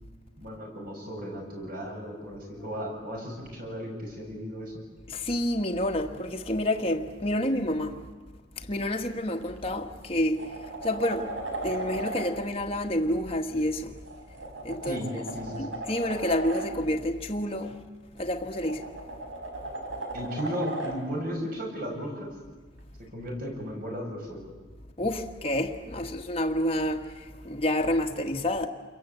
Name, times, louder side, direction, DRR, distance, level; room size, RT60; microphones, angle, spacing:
voice 1, 0.4-4.8 14.9-15.7 20.1-22.3 23.0-24.5, equal, 45° right, 7.2 m, -35 dB
voice 2, 5.1-8.0 8.6-10.5 10.8-13.9 14.6-15.2 15.6-17.8 18.2-18.8 25.0-28.7, left 1 dB, 30° left, 1.5 m, -29 dB
sound 1, 9.4-9.6 10.0-12.3 14.0-16.7 18.2-21.0 23.3-23.4, right 2 dB, 80° right, 4.8 m, -37 dB
29.0 x 22.5 x 8.6 m
head